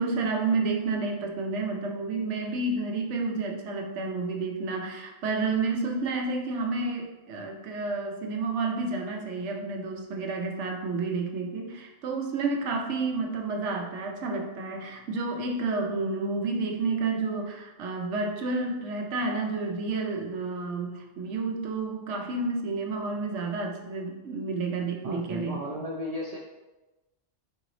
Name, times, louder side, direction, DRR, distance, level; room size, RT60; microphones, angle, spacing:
voice 1, 0.0-25.6, right 3 dB, 85° right, 2 dB, 1.0 m, -30 dB
voice 2, 25.0-26.4, equal, 55° right, 0 dB, 0.4 m, -34 dB
4.4 x 3.8 x 3.1 m, 1.1 s
omnidirectional pair, 1.2 m